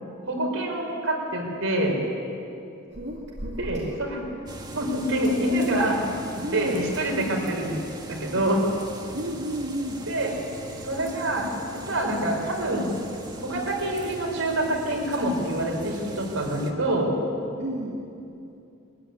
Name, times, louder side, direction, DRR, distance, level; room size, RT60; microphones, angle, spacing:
voice 1, 0.3-2.0 3.7-4.2 4.7-6.0 6.5-7.8 8.1-8.6 10.1-10.3 10.8-11.5 11.7-12.9 13.4-17.1, right 1 dB, 75° right, 0 dB, 4.7 m, -26 dB
voice 2, 2.9-4.0 6.4-6.9 9.1-10.0 17.6-18.1, equal, 55° right, -4 dB, 2.5 m, -32 dB
sound 1, 4.5-16.7, right 2 dB, 20° right, 1.6 m, -40 dB
22.5 x 14.0 x 10.0 m, 2.7 s
head